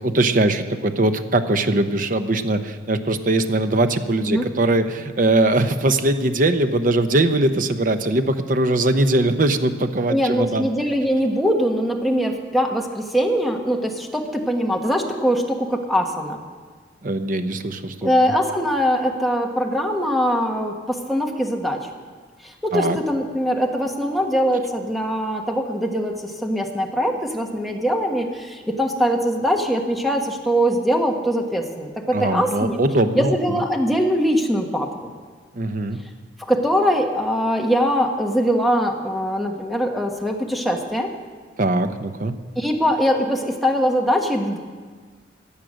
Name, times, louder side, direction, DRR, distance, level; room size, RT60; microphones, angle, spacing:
voice 1, 0.0-10.7 17.0-18.1 22.7-23.0 32.1-33.6 35.5-36.0 41.6-42.3, right 2 dB, 50° right, 9 dB, 0.8 m, -21 dB
voice 2, 10.1-16.4 18.0-21.9 22.6-32.8 33.1-34.9 36.5-41.1 42.6-44.6, equal, ahead, 1 dB, 1.4 m, -22 dB
16.5 x 10.5 x 6.4 m, 1.5 s
head